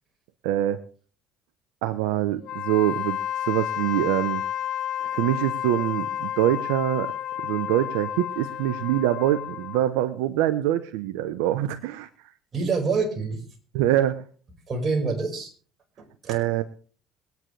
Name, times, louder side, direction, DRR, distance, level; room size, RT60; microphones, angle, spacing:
voice 1, 0.4-0.8 1.8-4.4 5.0-7.1 7.4-12.1 13.7-14.2 16.3-16.7, right 13 dB, 90° right, 12 dB, 0.8 m, -24 dB
Wind instrument woodwind instrument, 2.4-9.9, left 11 dB, 60° left, 1.3 m, -31 dB
voice 2, 12.5-13.4 14.7-15.5 16.0-16.4, right 4 dB, 40° right, 3 dB, 5.0 m, -26 dB
22.5 x 9.3 x 3.3 m, 0.41 s
supercardioid pair, 85°, 0 cm